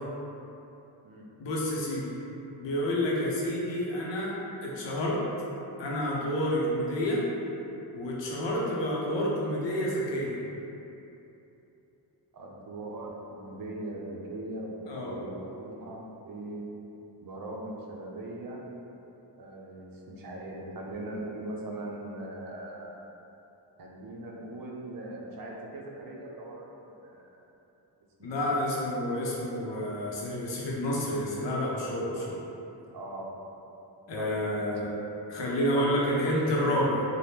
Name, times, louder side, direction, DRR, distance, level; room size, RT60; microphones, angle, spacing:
voice 1, 1.4-2.0 2.6-4.3 4.6-5.2 5.8-7.2 7.9-10.4 14.9-15.1 28.2-32.4 34.1-34.9 35.3-37.0, equal, 85° left, -4 dB, 0.7 m, -29 dB
voice 2, 12.3-16.6 17.2-18.6 19.4-23.0 23.8-27.3 28.2-28.4 32.9-33.3 34.1-34.7, right 1 dB, 55° right, -2 dB, 0.5 m, -40 dB
3.3 x 2.1 x 2.8 m, 2.9 s
wide cardioid pair, 110°, 43 cm